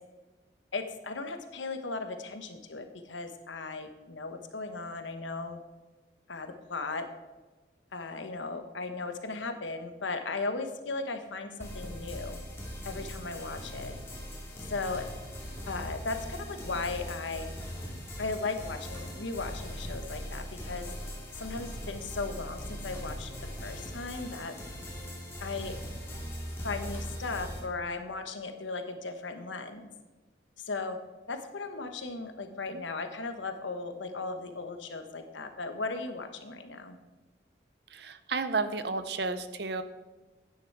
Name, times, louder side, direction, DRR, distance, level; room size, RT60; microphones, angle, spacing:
voice 1, 0.7-5.6 6.3-7.1 7.9-12.4 12.8-14.0 14.7-15.0 15.7-17.5 18.2-20.9 21.3-23.3 23.6-24.5 25.4-25.7 26.6-29.9 30.6-31.0 31.3-37.0, left 3 dB, 85° left, 7 dB, 1.1 m, -36 dB
sound 1, 11.6-27.6, equal, 15° left, 2.4 m, -40 dB
voice 2, 37.9-39.8, right 4 dB, 60° right, 11 dB, 0.7 m, -32 dB
9.9 x 9.3 x 4.7 m, 1.2 s
head